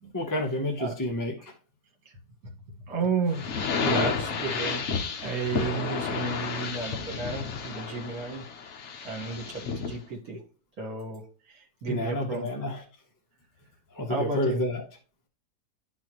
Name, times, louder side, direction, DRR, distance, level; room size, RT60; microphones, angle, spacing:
voice 1, 0.1-1.3 11.9-12.8 13.9-14.8, left 1 dB, 15° left, 1 dB, 0.8 m, -29 dB
voice 2, 2.9-3.5 3.8-4.8 5.2-8.4 9.0-10.4 10.8-12.5 14.1-14.6, right 4 dB, 60° right, 2 dB, 2.1 m, -32 dB
sound 1, 3.3-10.0, left 5 dB, 50° left, 1.0 m, -31 dB
11.0 x 4.1 x 3.0 m, 0.36 s
omnidirectional pair, 1.8 m